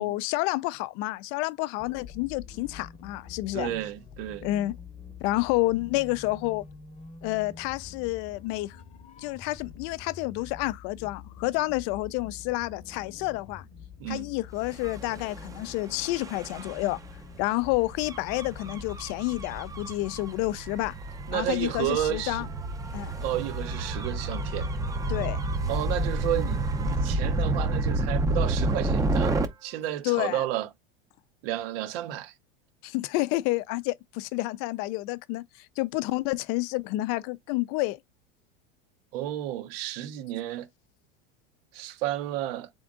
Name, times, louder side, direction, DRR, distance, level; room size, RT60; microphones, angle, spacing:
voice 1, 0.0-3.7 4.4-4.7 5.2-6.6 7.2-8.8 9.2-13.7 14.1-17.0 17.4-21.0 21.3-22.5 22.9-23.1 25.1-25.4 30.0-30.4 32.8-38.0, left 19 dB, 50° left, 0.4 m, -29 dB
sound 1, 1.8-20.0, left 6 dB, 25° left, 0.9 m, -46 dB
voice 2, 3.5-4.5 14.0-14.3 21.3-22.5 23.2-24.7 25.7-30.7 31.4-32.3 39.1-40.7 41.7-42.7, right 13 dB, 70° right, 1.0 m, -32 dB
Gull seagull / Waves surf / Siren, 14.7-29.5, right 2 dB, 10° right, 0.6 m, -30 dB
3.6 x 3.4 x 3.6 m
supercardioid pair, 125°, 30 cm